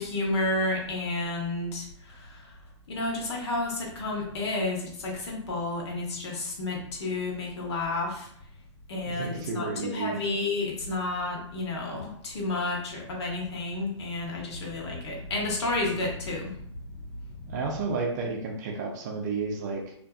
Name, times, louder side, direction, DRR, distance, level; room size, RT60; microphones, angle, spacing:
voice 1, 0.0-2.6 2.9-8.3 8.9-17.5, left 2 dB, 65° left, -1 dB, 1.0 m, -31 dB
voice 2, 9.1-10.2 17.5-19.9, right 4 dB, 35° right, 1 dB, 0.5 m, -32 dB
2.5 x 2.5 x 2.3 m, 0.67 s
hypercardioid pair, 150°, 15 cm